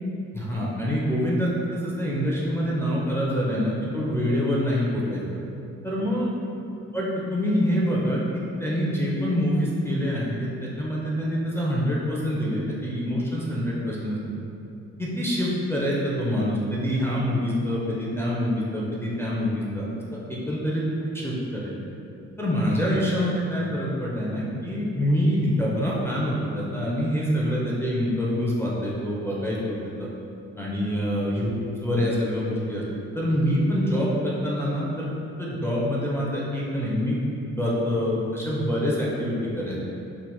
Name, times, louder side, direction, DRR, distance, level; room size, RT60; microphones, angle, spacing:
voice 1, 0.3-5.2 5.8-6.2 6.9-14.2 15.0-19.9 20.3-21.7 22.4-30.1 30.6-31.5 31.8-32.8 33.1-35.1 35.4-37.2 37.6-39.8, equal, 10° left, -6 dB, 0.4 m, -26 dB
3.2 x 2.9 x 2.2 m, 2.8 s
cardioid pair, 90°, 30 cm